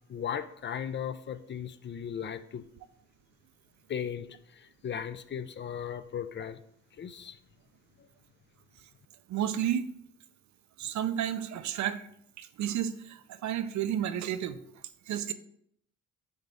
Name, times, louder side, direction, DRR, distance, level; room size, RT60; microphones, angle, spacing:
voice 1, 0.1-2.7 3.9-6.6 7.0-7.4, left 8 dB, 40° left, 12 dB, 0.4 m, -37 dB
voice 2, 9.3-9.9 10.8-12.1 12.4-15.3, right 10 dB, 70° right, 11 dB, 0.6 m, -32 dB
9.6 x 4.0 x 3.5 m, 0.72 s
cardioid pair, 90°, 30 cm